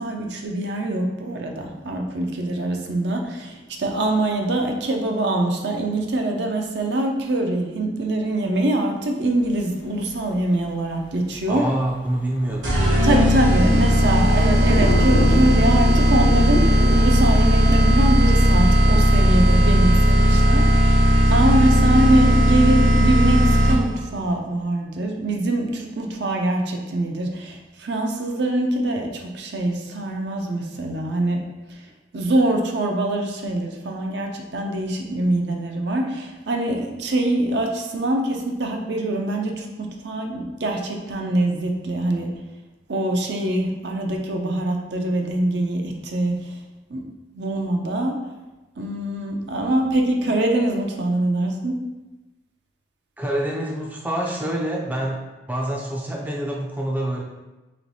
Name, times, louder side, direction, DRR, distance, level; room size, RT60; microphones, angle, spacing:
voice 1, 0.0-11.6 13.0-31.4 32.1-42.3 42.9-46.5 46.9-47.1 47.3-48.2 48.8-51.8, right 1 dB, 65° right, 2 dB, 0.5 m, -24 dB
Thunder, 10.1-10.2 10.6-10.7 11.1-11.2 11.5-11.6 11.8-17.0, left 1 dB, 70° left, 0.4 m, -29 dB
voice 2, 11.5-12.9 53.2-55.2 55.5-57.2, right 1 dB, 10° right, -1 dB, 0.4 m, -26 dB
sound 1, 12.6-24.0, equal, 80° right, 1.0 m, -16 dB
3.2 x 3.0 x 4.0 m, 1.1 s
head